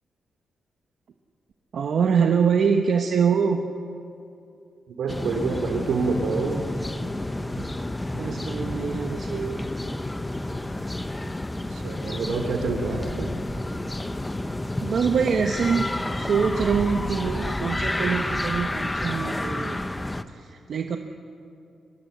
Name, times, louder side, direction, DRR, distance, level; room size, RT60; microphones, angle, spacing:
voice 1, 1.7-3.6 8.1-9.7 14.8-15.9 16.2-19.8 20.3-21.0, right 6 dB, 55° right, 4 dB, 1.0 m, -24 dB
voice 2, 5.0-6.6 11.7-13.3, right 4 dB, 80° right, 4 dB, 2.8 m, -27 dB
sound 1, 5.1-20.2, left 1 dB, 10° left, 0.7 m, -30 dB
24.5 x 20.0 x 7.9 m, 2.6 s
wide cardioid pair, 165°, 0 cm